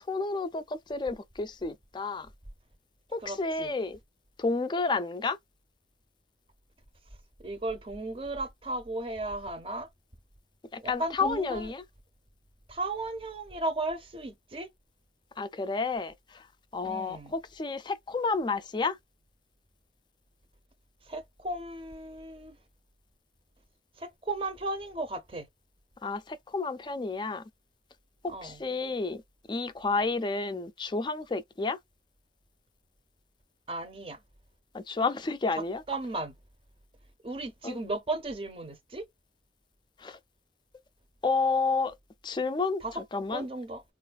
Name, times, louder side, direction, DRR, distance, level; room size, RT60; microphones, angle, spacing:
voice 1, 0.1-0.6 0.9-2.3 3.1-4.0 4.4-5.4 10.9-11.8 15.4-16.1 16.7-18.9 26.0-26.2 26.5-27.4 28.4-29.2 29.5-31.8 34.7-35.8 37.6-37.8 40.0-40.2 41.2-41.9 42.2-42.8 43.1-43.4, left 4 dB, 25° left, 0.3 m, -30 dB
voice 2, 3.2-3.7 7.4-9.9 10.8-11.7 12.7-14.7 16.8-17.3 21.1-22.5 24.0-25.5 28.3-28.6 33.7-34.2 35.5-36.3 37.2-39.1 42.8-43.0 43.3-43.8, right 2 dB, 30° right, 0.6 m, -35 dB
4.0 x 2.4 x 2.2 m
head